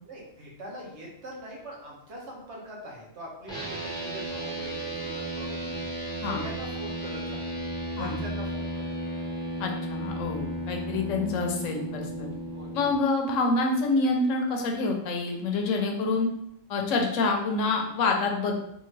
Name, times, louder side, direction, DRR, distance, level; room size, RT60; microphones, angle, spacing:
voice 1, 0.0-5.9 6.2-7.6 7.9-9.2 12.5-12.8, right 1 dB, 60° right, -3 dB, 1.3 m, -43 dB
sound 1, 3.5-12.9, right 1 dB, 5° left, 0.3 m, -34 dB
voice 2, 9.6-12.3 12.7-16.3 16.7-18.5, left 3 dB, 75° left, 2 dB, 1.0 m, -27 dB
3.5 x 2.6 x 3.2 m, 0.77 s
omnidirectional pair, 1.3 m